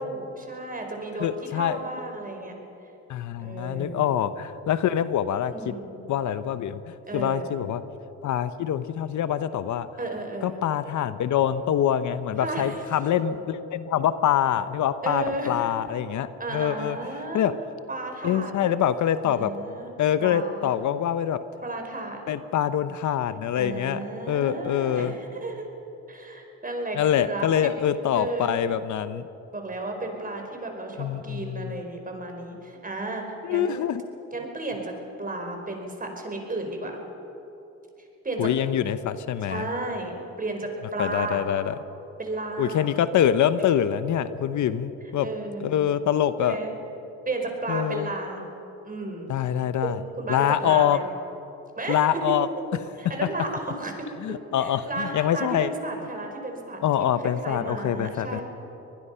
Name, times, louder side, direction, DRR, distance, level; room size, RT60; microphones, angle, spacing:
voice 1, 0.0-2.5 3.4-4.1 5.5-5.9 7.1-7.5 10.0-10.6 12.4-12.8 15.0-15.6 16.4-17.5 17.9-18.7 19.2-19.9 20.2-20.7 21.6-22.2 23.5-25.7 26.1-27.7 28.1-28.6 29.5-33.9 34.3-37.0 38.2-38.5 39.4-40.1 40.4-41.4 42.2-42.9 45.2-45.9 46.4-46.7 47.2-48.4 48.8-49.3 49.8-51.0 51.8-52.0 53.0-54.1 54.6-58.4, right 2 dB, 25° right, 3 dB, 5.0 m, -33 dB
voice 2, 1.2-1.8 3.1-5.7 6.1-7.8 8.2-9.9 10.4-17.0 17.3-17.5 18.2-19.5 20.0-21.4 22.3-24.0 24.3-25.1 27.0-29.2 31.0-31.7 33.4-34.0 38.4-39.7 41.0-41.7 42.6-45.3 45.6-46.6 47.7-48.1 49.3-50.0 50.3-51.0 51.9-52.5 54.2-55.7 56.8-58.4, left 10 dB, 70° left, 13 dB, 0.9 m, -25 dB
24.0 x 20.0 x 5.7 m, 2.9 s
supercardioid pair, 75°, 31 cm